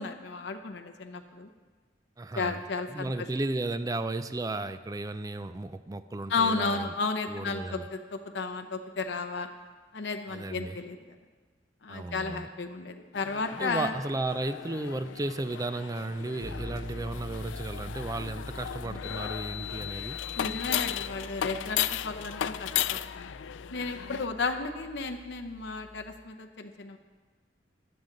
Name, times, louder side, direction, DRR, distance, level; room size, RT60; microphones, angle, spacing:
voice 1, 0.0-1.5 2.3-3.3 6.3-9.5 9.9-11.2 11.8-13.9 20.4-23.3 23.7-27.0, left 4 dB, 65° left, 5 dB, 0.7 m, -33 dB
voice 2, 2.2-2.6 2.9-6.9 7.3-7.9 10.3-10.8 11.9-12.5 13.5-20.2, right 2 dB, 20° right, 12 dB, 0.4 m, -34 dB
sound 1, 13.1-24.3, left 11 dB, 85° left, 0.3 m, -35 dB
sound 2, 16.4-26.2, left 1 dB, 50° right, 1.6 m, -44 dB
14.5 x 11.0 x 3.9 m, 1.4 s
head